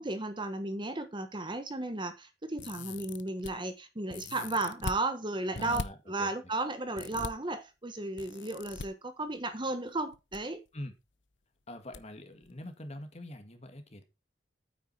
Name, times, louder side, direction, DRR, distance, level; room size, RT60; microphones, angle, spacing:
voice 1, 0.0-10.6, right 2 dB, 25° right, 1.2 m, -34 dB
sound 1, 2.6-3.5 4.1-5.0 5.5-5.9 7.0-7.3 8.2-8.9 10.0-10.4 10.7-10.8 11.9-12.0 12.4-12.5, left 4 dB, 85° left, 0.8 m, -40 dB
voice 2, 5.5-6.3 10.7-10.9 11.7-14.1, left 1 dB, 35° left, 2.1 m, -44 dB
9.2 x 8.6 x 4.4 m
head